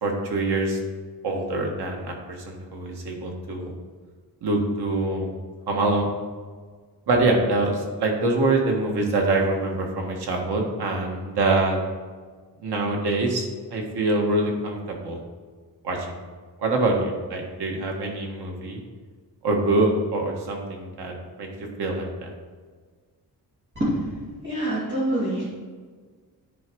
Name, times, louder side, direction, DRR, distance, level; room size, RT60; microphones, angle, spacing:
voice 1, 0.0-0.8 1.2-3.7 4.4-5.3 5.7-6.1 7.1-11.8 12.6-15.2 15.8-16.2 16.6-18.8 19.4-21.5 21.8-22.3, right 2 dB, 80° right, 1 dB, 1.7 m, -25 dB
voice 2, 24.4-25.5, right 1 dB, 30° right, -10 dB, 2.4 m, -25 dB
10.5 x 4.8 x 4.7 m, 1.5 s
wide cardioid pair, 170°, 39 cm